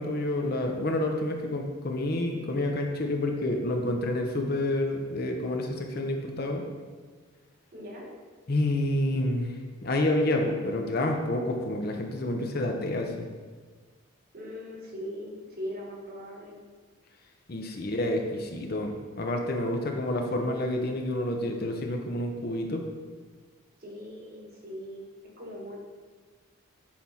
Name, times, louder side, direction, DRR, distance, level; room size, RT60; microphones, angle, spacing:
voice 1, 0.0-6.6 8.5-13.1 17.5-22.8, left 1 dB, 45° left, 3 dB, 0.7 m, -29 dB
voice 2, 7.7-8.1 14.3-16.6 23.8-25.0 25.4-25.8, equal, 45° right, -1 dB, 1.3 m, -40 dB
7.5 x 4.4 x 4.2 m, 1.4 s
head